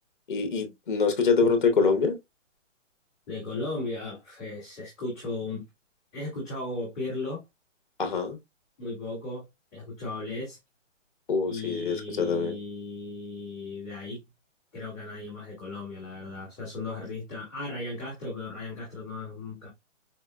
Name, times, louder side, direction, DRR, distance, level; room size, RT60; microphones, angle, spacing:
voice 1, 0.3-2.2 8.0-8.4 11.3-12.6, left 4 dB, 40° left, 0.7 m, -25 dB
voice 2, 3.3-5.6 6.1-7.4 8.8-9.4 9.7-10.6 11.5-14.2 14.7-19.7, left 2 dB, 5° left, 0.6 m, -36 dB
4.3 x 2.0 x 2.3 m
hypercardioid pair, 175°, 37 cm